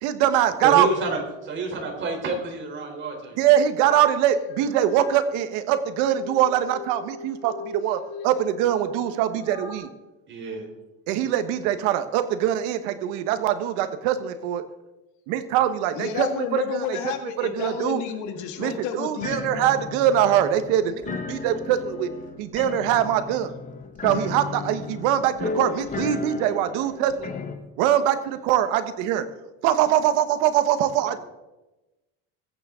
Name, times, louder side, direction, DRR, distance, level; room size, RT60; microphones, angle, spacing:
voice 1, 0.0-0.9 3.4-9.9 11.1-14.6 15.3-17.0 17.4-18.0 18.6-22.1 22.4-23.5 24.0-27.3 27.8-29.3 29.6-31.2, right 10 dB, 90° right, 10 dB, 1.3 m, -23 dB
voice 2, 0.6-3.4 10.3-10.7, right 3 dB, 40° right, 1 dB, 3.7 m, -28 dB
sound 1, 4.5-5.2 5.7-9.8, left 5 dB, 55° left, 5.2 m, -41 dB
voice 3, 15.9-19.6 31.0-31.2, left 8 dB, 75° left, 6 dB, 2.0 m, -31 dB
sound 2, 19.2-27.6, left 5 dB, 25° left, 1.3 m, -34 dB
22.0 x 8.7 x 3.7 m, 1.0 s
cardioid pair, 140°, 30 cm